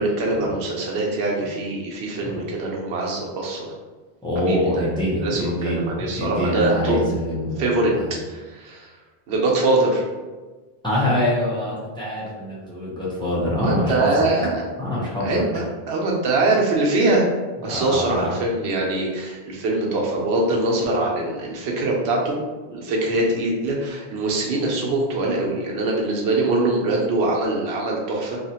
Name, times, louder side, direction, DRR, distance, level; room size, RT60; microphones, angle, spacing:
voice 1, 0.0-3.7 4.4-4.9 5.2-7.1 7.6-7.9 8.3-8.9 9.3-10.0 13.6-14.6 15.2-17.3 17.6-22.4 22.7-28.4, right 2 dB, 90° right, -1 dB, 0.9 m, -23 dB
voice 2, 4.2-7.6 8.0-8.1 10.8-14.3 14.8-15.4 17.6-18.4, left 1 dB, 5° left, -8 dB, 0.7 m, -25 dB
2.7 x 2.4 x 2.8 m, 1.3 s
omnidirectional pair, 1.1 m